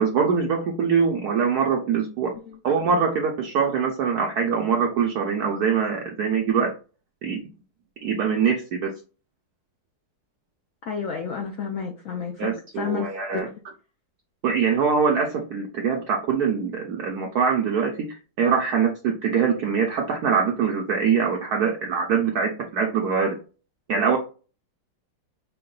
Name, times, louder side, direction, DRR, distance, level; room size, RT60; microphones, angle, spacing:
voice 1, 0.0-2.3 2.6-6.7 7.2-7.4 8.0-8.9 12.4-13.5 14.4-23.4 23.9-24.2, right 6 dB, 70° right, 2 dB, 0.9 m, -23 dB
voice 2, 2.3-2.6 10.9-12.5 12.8-13.5, left 6 dB, 70° left, 2 dB, 0.7 m, -31 dB
4.6 x 2.2 x 3.7 m, 0.35 s
omnidirectional pair, 2.1 m